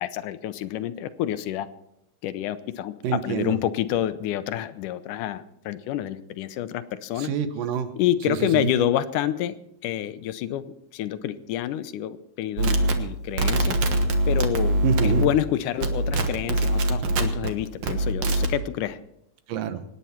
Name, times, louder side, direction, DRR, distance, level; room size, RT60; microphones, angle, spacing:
voice 1, 0.0-1.7 2.2-2.9 3.2-7.3 8.0-9.6 9.8-10.6 10.9-13.8 14.3-19.0, left 11 dB, 80° left, 13 dB, 2.2 m, -28 dB
voice 2, 3.0-3.6 7.1-8.0 8.3-8.7 14.8-15.3 19.5-19.8, right 8 dB, 85° right, 10 dB, 2.7 m, -27 dB
sound 1, 12.6-15.5 15.8-17.5 17.8-18.5, right 1 dB, 55° right, 1.6 m, -23 dB
26.0 x 9.7 x 4.3 m, 0.80 s
omnidirectional pair, 3.8 m